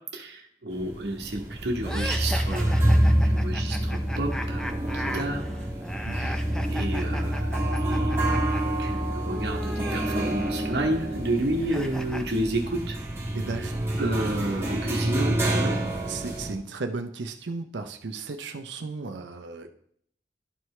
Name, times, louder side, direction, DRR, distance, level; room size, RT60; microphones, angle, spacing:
voice 1, 0.1-3.0 3.2-5.4 6.1-6.4 6.7-8.5 8.8-13.0 14.0-15.8, right 1 dB, 70° right, 1 dB, 1.0 m, -31 dB
sound 1, 0.7-16.5, right 1 dB, 15° right, 1.5 m, -27 dB
sound 2, 1.8-8.6 8.9-12.2, equal, 5° left, 0.4 m, -38 dB
voice 2, 6.1-6.4 13.3-14.1 16.1-19.7, right 3 dB, 90° right, 6 dB, 0.6 m, -35 dB
12.0 x 4.7 x 3.2 m, 0.66 s
head